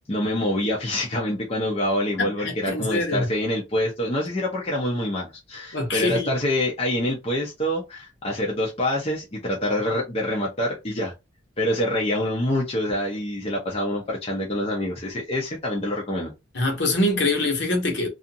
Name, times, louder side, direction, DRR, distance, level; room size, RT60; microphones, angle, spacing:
voice 1, 0.1-11.1 11.6-16.3, left 1 dB, 30° left, 0.6 m, -26 dB
voice 2, 2.2-3.3 5.7-6.3 16.5-18.1, left 2 dB, 60° left, 1.0 m, -24 dB
2.5 x 2.4 x 2.6 m
head